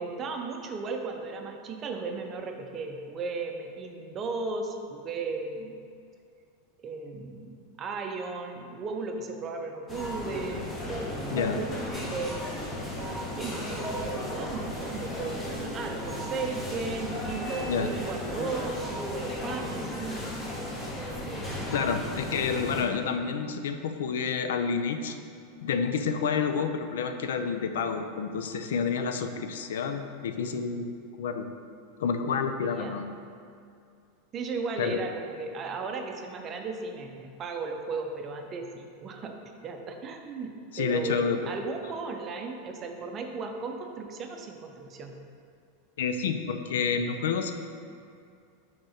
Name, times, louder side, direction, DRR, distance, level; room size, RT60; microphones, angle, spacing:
voice 1, 0.0-5.8 6.8-11.5 12.1-12.4 13.4-20.2 21.3-21.7 32.6-33.0 34.3-39.4 39.6-45.2, right 4 dB, 30° right, 4 dB, 0.6 m, -36 dB
sound 1, 9.9-22.8, left 1 dB, 15° left, 1.0 m, -35 dB
voice 2, 21.7-25.2 25.6-31.5 32.0-33.1 34.8-35.1 40.7-41.5 46.0-47.5, left 6 dB, 85° left, 7 dB, 0.5 m, -29 dB
5.2 x 3.7 x 5.7 m, 2.4 s
supercardioid pair, 140°, 0 cm